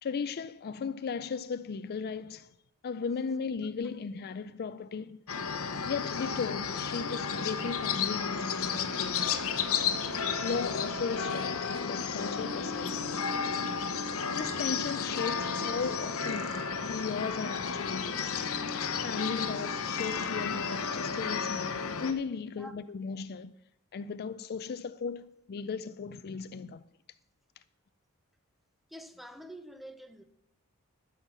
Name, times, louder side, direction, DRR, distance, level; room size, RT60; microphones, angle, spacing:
voice 1, 0.0-2.5 2.8-5.2 5.8-9.4 10.4-13.4 14.3-16.6 16.9-18.4 19.0-23.5 23.9-26.8, left 5 dB, 45° left, 0.4 m, -36 dB
sound 1, 5.3-22.1, left 6 dB, 65° left, 0.9 m, -32 dB
voice 2, 28.9-30.2, equal, ahead, 0.7 m, -46 dB
13.0 x 7.2 x 5.9 m
head